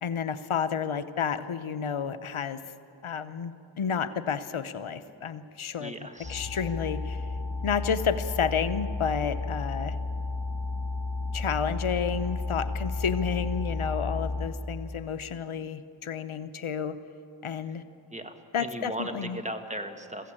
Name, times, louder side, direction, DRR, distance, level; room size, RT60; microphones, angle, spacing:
voice 1, 0.0-2.6 3.0-5.9 6.3-7.3 7.6-10.0 11.3-17.0 17.4-17.8 18.5-19.4, left 7 dB, 90° left, 12 dB, 0.9 m, -31 dB
voice 2, 5.8-6.5 17.6-17.7 18.1-20.3, right 1 dB, 15° right, 6 dB, 1.7 m, -38 dB
sound 1, 6.2-14.5, left 3 dB, 60° left, 2.4 m, -32 dB
21.5 x 15.5 x 8.8 m, 2.7 s
wide cardioid pair, 50°, 48 cm